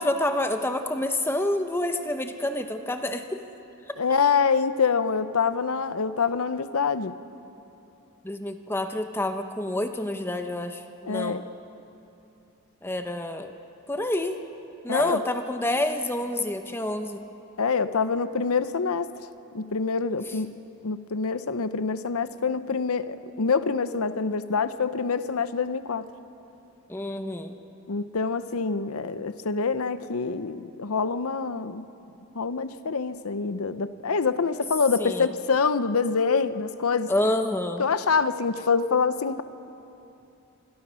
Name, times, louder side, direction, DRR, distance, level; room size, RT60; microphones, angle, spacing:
voice 1, 0.0-3.2 8.2-11.5 12.8-13.5 13.9-14.4 14.8-17.2 26.9-27.6 35.0-35.3 37.1-37.9, left 1 dB, 10° left, 6 dB, 0.8 m, -28 dB
voice 2, 4.0-7.1 11.1-11.4 14.9-15.2 17.6-19.1 19.5-20.5 20.8-26.1 27.9-31.8 32.3-37.1 37.8-39.4, left 5 dB, 80° left, 13 dB, 0.7 m, -26 dB
26.5 x 21.5 x 6.3 m, 2.9 s
head